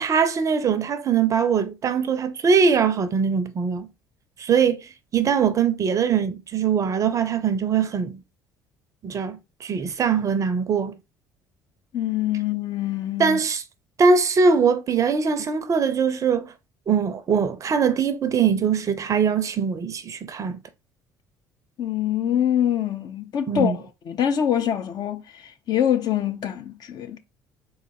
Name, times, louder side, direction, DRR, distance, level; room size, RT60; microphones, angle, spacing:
voice 1, 0.0-3.9 4.4-4.9 5.1-8.2 9.0-11.0 13.2-13.6 14.0-16.5 16.9-20.6 23.5-23.8, right 6 dB, 35° right, 0.5 m, -22 dB
voice 2, 11.9-13.4 21.8-27.2, left 10 dB, 45° left, 0.6 m, -25 dB
4.0 x 2.5 x 4.5 m
figure-of-eight pair, 55°, 10 cm